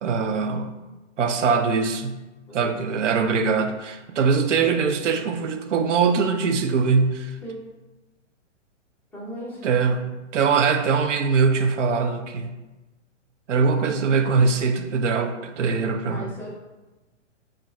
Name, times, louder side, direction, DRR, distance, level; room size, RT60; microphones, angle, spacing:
voice 1, 0.0-0.8 1.2-2.2 2.5-7.3 9.6-12.5 13.5-16.3, right 5 dB, 75° right, 6 dB, 0.6 m, -22 dB
voice 2, 9.1-9.6 16.1-16.5, equal, 5° left, -7 dB, 0.6 m, -37 dB
4.3 x 2.6 x 4.1 m, 1.1 s
hypercardioid pair, 140°, 36 cm